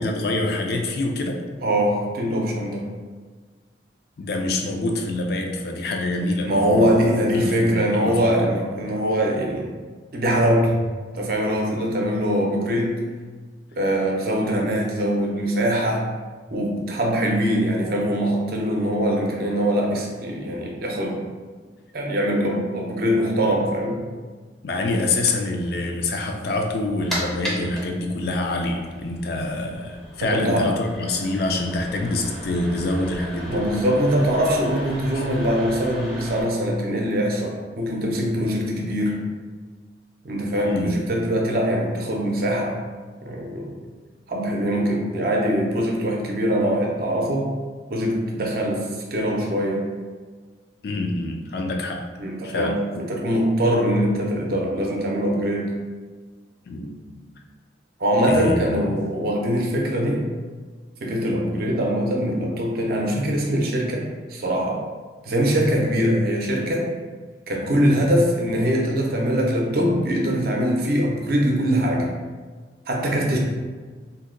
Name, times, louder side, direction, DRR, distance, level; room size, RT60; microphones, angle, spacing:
voice 1, 0.0-1.4 4.2-7.0 7.3-8.5 24.6-33.6 35.1-35.2 40.6-41.0 50.8-52.0 52.4-53.1 56.7-57.0 58.3-58.9 67.9-68.0, left 2 dB, 55° left, 3 dB, 0.4 m, -26 dB
voice 2, 1.6-2.8 6.4-9.7 10.1-10.8 11.1-13.0 13.8-16.1 16.5-21.2 21.9-24.0 30.2-30.7 33.5-39.2 40.2-42.7 43.2-43.8 44.3-47.5 47.9-48.9 49.1-49.8 52.2-52.7 53.1-55.7 58.0-60.2 61.0-64.8 65.2-66.9 67.5-72.1 72.9-73.4, equal, 55° right, -1 dB, 0.5 m, -22 dB
sound 1, 26.7-36.4, equal, ahead, 0.5 m, -36 dB
2.7 x 2.2 x 3.7 m, 1.5 s
head